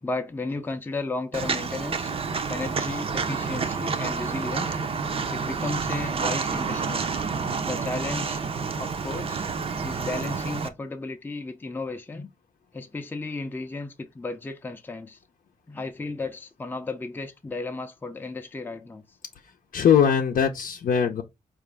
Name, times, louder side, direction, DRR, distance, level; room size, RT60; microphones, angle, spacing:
voice 1, 0.0-2.1 2.5-4.8 5.3-7.1 7.6-8.5 8.8-9.5 9.8-12.3 12.7-15.2 15.7-19.0, left 3 dB, 15° left, 0.4 m, -34 dB
Walk footsteps, 1.3-10.7, right 5 dB, 45° right, 0.5 m, -29 dB
voice 2, 19.4-21.2, left 8 dB, 80° left, 0.6 m, -21 dB
5.0 x 2.5 x 3.3 m
wide cardioid pair, 130°, 14 cm